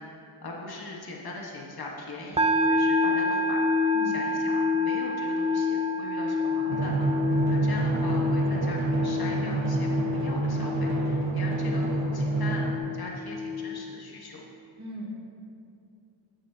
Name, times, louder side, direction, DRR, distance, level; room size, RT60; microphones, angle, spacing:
voice 1, 0.0-14.4, left 2 dB, 50° left, -1 dB, 1.3 m, -40 dB
sound 1, 2.4-13.8, left 3 dB, 15° right, 0.4 m, -28 dB
voice 2, 3.9-4.7 14.8-15.1, right 1 dB, 35° right, -5 dB, 2.5 m, -40 dB
Drum, 6.7-12.8, right 2 dB, 75° right, 1.2 m, -27 dB
12.5 x 10.5 x 2.8 m, 2.5 s
wide cardioid pair, 125°, 48 cm